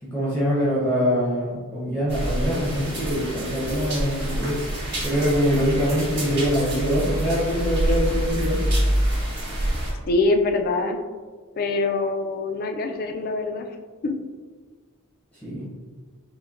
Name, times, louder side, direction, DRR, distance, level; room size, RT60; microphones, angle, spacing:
voice 1, 0.0-4.6 5.0-8.6 15.4-15.7, equal, 5° left, -8 dB, 0.8 m, -24 dB
sound 1, 2.1-9.9, right 1 dB, 55° right, 1.4 m, -26 dB
voice 2, 10.1-11.0 11.6-13.7 14.0-14.1, left 3 dB, 45° left, 5 dB, 0.3 m, -24 dB
5.6 x 2.2 x 2.5 m, 1.5 s
head